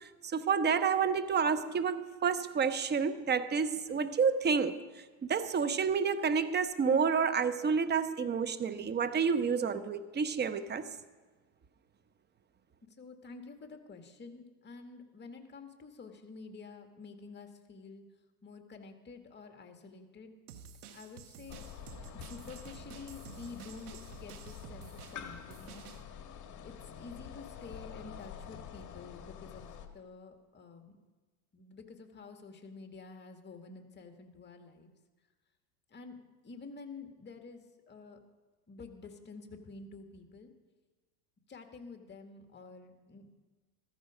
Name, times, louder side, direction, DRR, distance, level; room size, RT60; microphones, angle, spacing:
voice 1, 0.0-4.8 5.2-10.9, right 6 dB, 25° right, 10 dB, 0.9 m, -29 dB
voice 2, 12.8-18.0 18.4-20.3 20.9-21.6 22.1-25.8 26.6-29.6 29.9-31.0 31.5-34.9 35.9-36.2 36.4-38.2 38.7-40.5 41.5-43.4, left 4 dB, 25° left, 5 dB, 2.1 m, -49 dB
sound 1, 20.5-26.0, right 7 dB, 85° right, 1.6 m, -51 dB
sound 2, 21.5-29.9, left 8 dB, 40° left, 1.8 m, -47 dB
14.5 x 14.5 x 5.1 m, 1.3 s
supercardioid pair, 105°, 44 cm